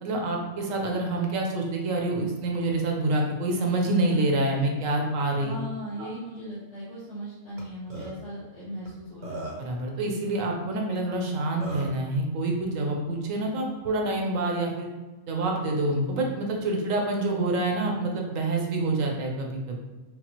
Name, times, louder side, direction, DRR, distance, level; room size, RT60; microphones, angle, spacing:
voice 1, 0.0-5.5 6.0-6.1 9.6-14.9 15.3-19.7, right 2 dB, 65° right, 0 dB, 1.0 m, -27 dB
voice 2, 5.4-9.4, equal, 50° left, -11 dB, 1.3 m, -38 dB
Burping eructation, 7.6-7.7 7.9-8.1 8.9-9.0 9.2-9.7 11.1-11.2 11.6-12.0, right 1 dB, 40° right, 0.7 m, -36 dB
5.7 x 2.0 x 2.9 m, 1.2 s
omnidirectional pair, 1.6 m